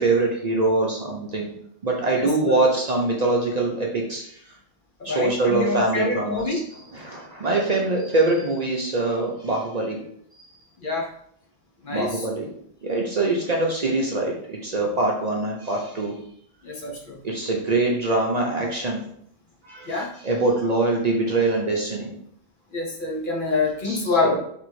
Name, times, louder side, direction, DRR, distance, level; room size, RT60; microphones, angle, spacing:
voice 1, 0.0-1.5 1.8-4.4 5.0-6.6 6.9-10.0 11.9-12.5 12.8-16.2 17.2-19.0 19.7-22.1 23.8-24.4, right 2 dB, 45° right, -1 dB, 0.7 m, -24 dB
voice 2, 2.2-2.8 5.0-6.6 10.8-11.1 11.8-12.3 16.6-17.2 19.9-20.1 22.7-24.4, left 3 dB, 55° left, -1 dB, 1.0 m, -26 dB
3.4 x 3.0 x 4.6 m, 0.67 s
omnidirectional pair, 1.1 m